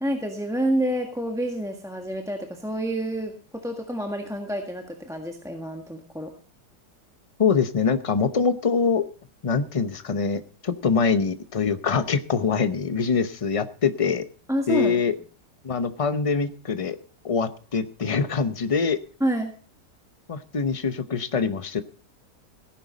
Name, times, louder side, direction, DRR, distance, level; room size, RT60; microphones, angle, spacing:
voice 1, 0.0-6.3 14.5-15.0 19.2-19.5, right 1 dB, ahead, 2 dB, 1.4 m, -28 dB
voice 2, 7.4-9.1 9.4-14.2 14.7-15.1 15.6-17.0 17.2-19.0 20.3-21.8, left 5 dB, 55° left, 11 dB, 0.3 m, -24 dB
17.0 x 10.0 x 4.0 m, 0.39 s
omnidirectional pair, 1.8 m